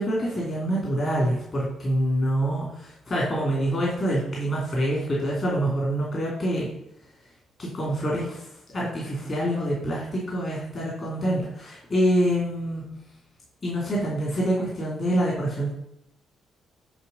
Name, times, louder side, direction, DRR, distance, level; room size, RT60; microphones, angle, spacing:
voice 1, 0.0-6.7 7.6-12.9 13.6-15.7, right 1 dB, 35° left, -4 dB, 2.6 m, -26 dB
9.8 x 3.4 x 5.3 m, 0.82 s
cardioid pair, 90°, 0 cm